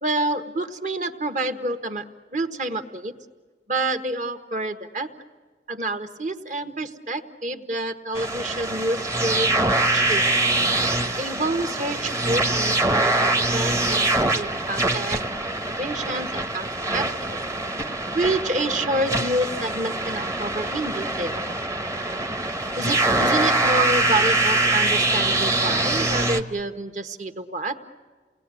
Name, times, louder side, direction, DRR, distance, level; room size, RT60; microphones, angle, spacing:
voice 1, 0.0-2.0 2.3-3.1 3.7-5.1 5.7-9.7 9.9-10.2 11.2-14.1 14.3-15.2 15.8-17.4 18.1-21.4 22.8-27.8, right 2 dB, 45° right, 8 dB, 1.3 m, -28 dB
sound 1, 8.2-26.4, right 2 dB, 15° right, 0.9 m, -23 dB
28.5 x 19.5 x 9.9 m, 1.4 s
head